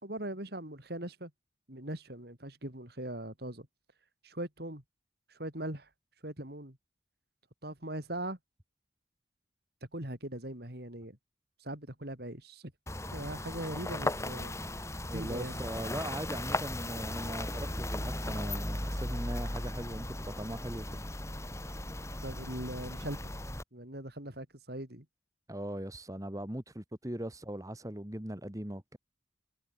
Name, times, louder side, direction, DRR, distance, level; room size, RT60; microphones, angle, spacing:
voice 1, 0.0-1.3 1.7-3.7 4.2-4.8 5.3-5.9 6.2-6.8 7.6-8.4 9.9-11.2 11.6-12.7 13.1-14.5 15.1-15.6 22.2-23.2 23.7-25.1, right 1 dB, 55° right, 4.3 m, -40 dB
sound 1, 12.9-23.6, left 1 dB, 15° left, 4.1 m, -37 dB
voice 2, 15.1-21.0 25.5-29.0, right 1 dB, 20° right, 1.8 m, -39 dB
head